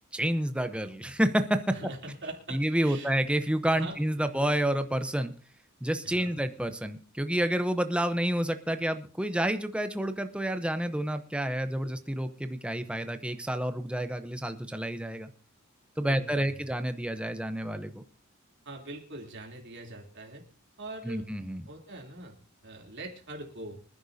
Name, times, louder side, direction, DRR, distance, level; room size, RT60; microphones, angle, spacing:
voice 1, 0.1-1.8 2.5-5.3 5.8-15.3 16.0-18.0 21.0-21.6, right 1 dB, 5° right, 9 dB, 0.7 m, -29 dB
voice 2, 1.7-3.2 3.7-4.5 6.0-6.4 16.0-16.6 18.6-20.4 20.8-21.2 21.7-23.8, right 2 dB, 55° right, 0 dB, 3.2 m, -43 dB
25.0 x 10.5 x 2.7 m, 0.37 s
head